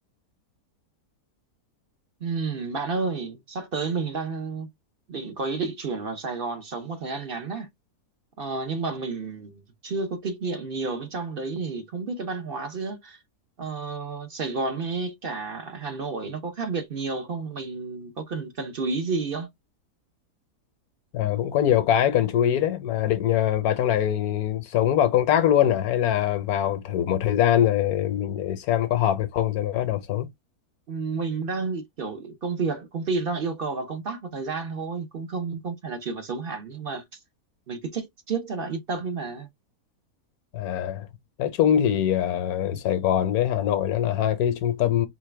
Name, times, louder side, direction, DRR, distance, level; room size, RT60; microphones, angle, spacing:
voice 1, 2.2-4.7 5.1-7.7 8.4-13.2 13.6-19.5 30.9-37.2 37.7-39.5, right 4 dB, 50° right, 0.7 m, -31 dB
voice 2, 21.1-30.3 40.5-41.1 41.4-45.1, left 10 dB, 70° left, 1.2 m, -23 dB
4.6 x 2.2 x 3.2 m
omnidirectional pair, 1.7 m